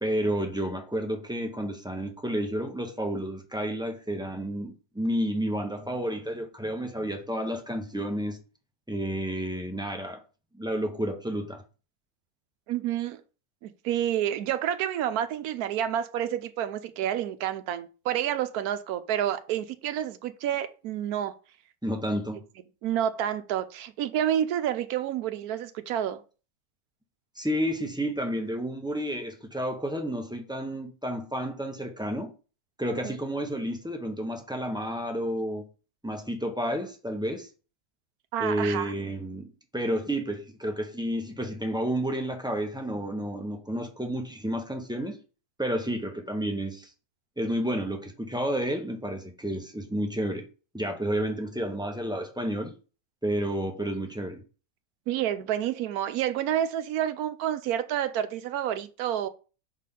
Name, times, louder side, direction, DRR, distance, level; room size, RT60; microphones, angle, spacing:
voice 1, 0.0-8.4 8.9-10.2 10.5-11.6 21.8-22.4 27.4-32.3 32.8-35.6 36.0-37.5 38.4-39.5 39.7-45.2 45.6-46.9 47.4-50.4 50.7-52.7 53.2-54.4, equal, 5° right, 0.8 m, -31 dB
voice 2, 12.7-13.2 13.6-21.3 22.8-26.2 33.0-33.2 38.3-38.9 55.1-59.3, right 10 dB, 85° right, 1.1 m, -29 dB
6.1 x 4.2 x 3.7 m
omnidirectional pair, 1.6 m